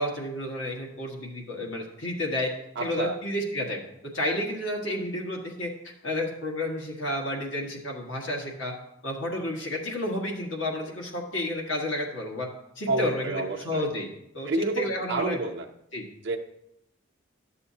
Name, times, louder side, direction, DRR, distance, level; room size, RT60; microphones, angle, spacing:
voice 1, 0.0-2.5 2.8-3.8 4.1-5.7 6.0-8.7 9.0-12.5 12.7-14.1 14.3-15.4 15.9-16.0, left 1 dB, 75° left, 0 dB, 1.6 m, -31 dB
voice 2, 2.8-3.2 12.9-13.9 14.5-15.7 16.2-16.4, right 2 dB, 60° right, 1 dB, 0.6 m, -29 dB
11.5 x 6.8 x 2.8 m, 0.80 s
head